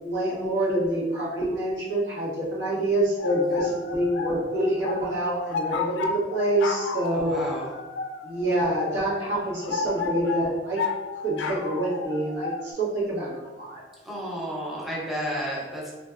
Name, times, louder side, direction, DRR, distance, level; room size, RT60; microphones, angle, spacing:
voice 1, 0.0-7.4 8.2-10.9 11.2-13.8, right 1 dB, 80° right, -7 dB, 1.1 m, -26 dB
sound 1, 3.2-12.7, left 4 dB, 90° left, 0.3 m, -33 dB
voice 2, 7.1-7.7 14.0-15.9, equal, ahead, -5 dB, 0.6 m, -32 dB
3.3 x 2.6 x 2.3 m, 1.2 s
head